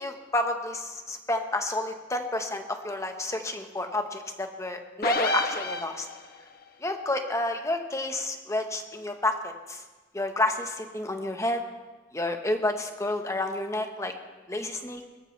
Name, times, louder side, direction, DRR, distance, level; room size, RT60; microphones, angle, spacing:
voice 1, 0.0-6.1 6.8-9.8 10.1-11.6 12.1-14.1 14.5-15.0, left 1 dB, 15° left, 5 dB, 1.1 m, -30 dB
sound 1, 5.0-6.4, left 2 dB, 50° left, 1.1 m, -29 dB
23.5 x 14.0 x 3.3 m, 1.3 s
head